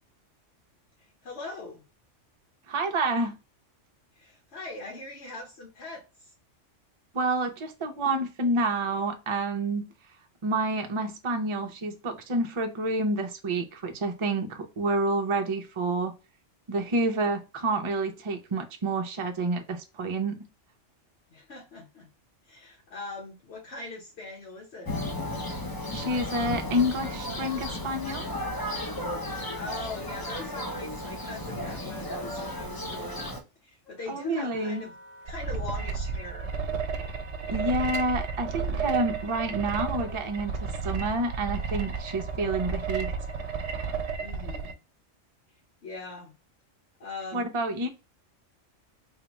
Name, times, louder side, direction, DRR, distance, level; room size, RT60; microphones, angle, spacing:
voice 1, 1.0-1.8 4.1-6.3 21.3-22.1 22.4-24.9 29.5-35.0 35.2-36.5 44.2-44.8 45.8-46.3 47.0-47.5, left 3 dB, 60° left, -4 dB, 1.3 m, -41 dB
voice 2, 2.7-3.3 7.1-9.9 10.4-16.1 16.7-20.4 25.9-28.3 34.1-34.8 37.5-43.1 47.3-47.9, right 2 dB, 35° right, 5 dB, 0.5 m, -28 dB
Thunder, 24.9-33.4, left 1 dB, 30° left, 0.4 m, -34 dB
Wind instrument woodwind instrument, 33.8-44.1, left 1 dB, 80° left, 1.8 m, -50 dB
sound 1, 35.3-44.7, right 5 dB, 70° right, 0.8 m, -32 dB
3.7 x 2.3 x 2.9 m, 0.29 s
omnidirectional pair, 1.3 m